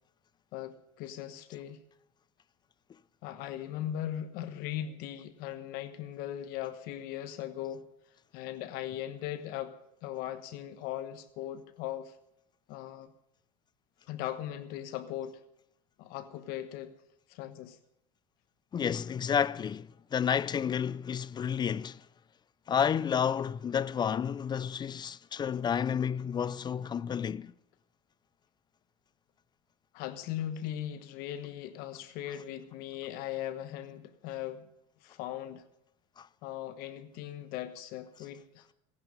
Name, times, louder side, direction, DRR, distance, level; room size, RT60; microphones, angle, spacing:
voice 1, 0.5-1.8 3.2-7.9 8.3-12.1 12.7-13.1 14.1-15.4 16.0-16.9 17.3-17.8 29.9-34.7 35.0-35.6 36.4-38.7, left 11 dB, 65° left, 1.1 m, -39 dB
voice 2, 18.7-22.1 22.7-27.5 32.3-32.4 36.2-36.3 38.2-38.3, left 8 dB, 25° left, 0.4 m, -31 dB
17.5 x 11.0 x 5.4 m
supercardioid pair, 105°, 17 cm